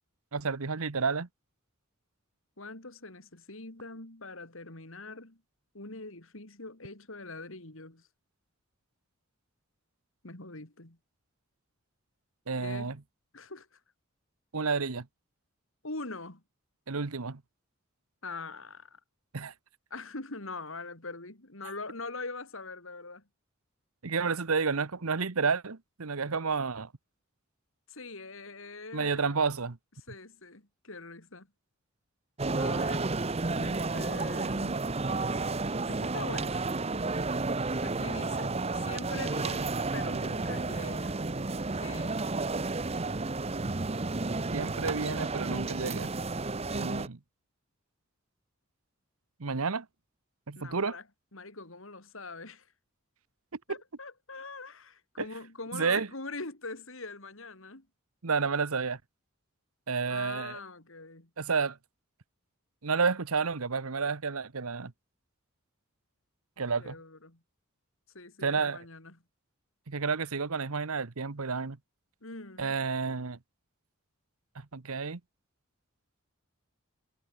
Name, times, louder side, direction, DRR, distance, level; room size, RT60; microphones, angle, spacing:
voice 1, 0.3-1.3 12.5-13.0 14.5-15.1 16.9-17.4 19.3-19.5 24.0-26.9 28.9-29.8 44.5-46.1 46.7-47.2 49.4-49.9 50.5-51.0 53.7-53.8 55.2-55.3 55.7-56.1 58.2-59.0 59.9-60.6 61.4-61.8 62.8-64.9 66.6-67.0 68.4-68.8 69.9-71.8 72.6-73.4 74.7-75.2, right 5 dB, 85° right, 1.1 m, -30 dB
voice 2, 2.6-5.4 5.7-8.1 10.2-11.0 12.6-13.0 13.3-13.8 15.8-16.4 18.2-19.0 19.9-23.2 27.9-29.3 30.1-31.5 32.6-33.1 33.6-34.8 35.9-36.7 37.8-41.2 41.8-42.2 50.5-51.0 51.3-52.7 53.7-57.9 60.1-61.3 66.8-67.4 68.1-69.2 72.2-72.8, left 3 dB, 70° left, 3.4 m, -43 dB
sound 1, 32.4-47.1, right 3 dB, 30° right, 0.8 m, -32 dB
head